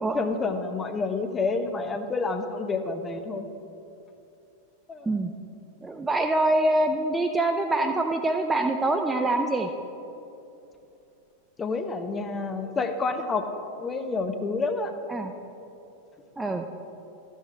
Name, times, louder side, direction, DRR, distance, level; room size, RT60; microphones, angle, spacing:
voice 1, 0.1-3.5 4.9-5.2 11.6-13.5 13.8-14.9, left 3 dB, 20° left, 7 dB, 0.7 m, -29 dB
voice 2, 5.8-9.7 15.1-15.3 16.4-16.7, right 2 dB, 10° right, 5 dB, 0.5 m, -25 dB
13.0 x 6.4 x 4.5 m, 2.8 s
figure-of-eight pair, 90°, 0 cm